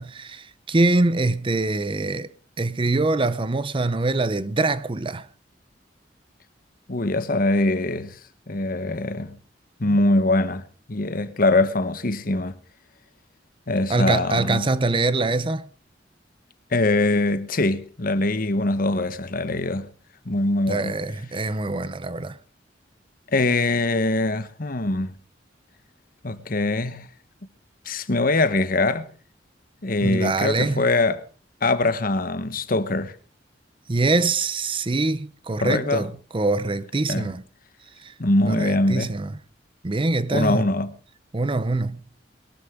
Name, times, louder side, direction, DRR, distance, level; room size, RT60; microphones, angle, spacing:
voice 1, 0.0-2.3 2.6-5.3 13.9-15.7 20.7-22.4 30.0-30.9 33.9-37.4 38.0-38.1 38.5-39.4 39.8-40.6 41.3-42.0, right 2 dB, 30° right, 0.7 m, -24 dB
voice 2, 6.9-8.1 8.5-9.3 9.8-10.6 10.9-12.5 13.7-14.6 16.7-19.9 20.2-20.9 23.3-25.1 26.2-27.1 27.9-29.1 29.8-31.2 31.6-33.1 35.6-36.1 37.1-37.3 38.2-39.1 40.3-40.9, left 2 dB, 50° left, 1.2 m, -22 dB
21.5 x 13.0 x 3.7 m
head